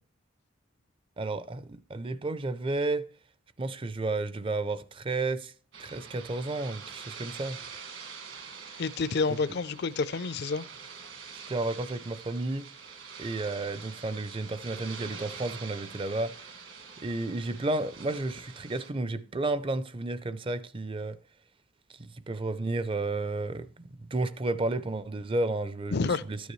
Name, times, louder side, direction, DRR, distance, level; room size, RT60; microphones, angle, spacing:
voice 1, 1.2-3.1 3.6-5.5 5.8-7.6 9.3-9.4 11.5-12.7 13.2-16.3 17.0-21.2 22.0-26.4, right 2 dB, 25° right, 0.5 m, -32 dB
sound 1, 5.7-18.9, right 5 dB, 70° right, 1.8 m, -45 dB
voice 2, 8.8-10.7 25.9-26.2, left 4 dB, 55° left, 0.5 m, -29 dB
13.0 x 9.3 x 3.1 m
head